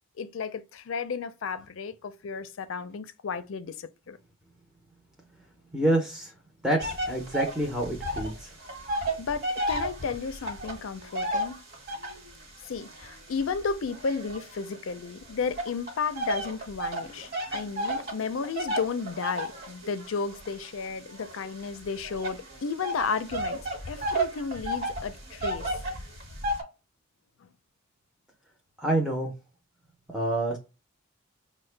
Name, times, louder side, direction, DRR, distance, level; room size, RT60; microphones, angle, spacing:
voice 1, 0.2-4.2 9.2-11.6 12.6-23.6 23.9-25.7 27.4-27.5, left 5 dB, 75° left, 0.4 m, -33 dB
voice 2, 5.7-6.3 6.6-8.5 28.8-29.3 30.1-30.6, right 1 dB, 5° right, 0.6 m, -27 dB
sound 1, 6.8-8.4 8.6-12.3 12.9-14.9 15.6-26.6, right 1 dB, 50° right, 1.2 m, -32 dB
5.2 x 2.1 x 3.2 m
head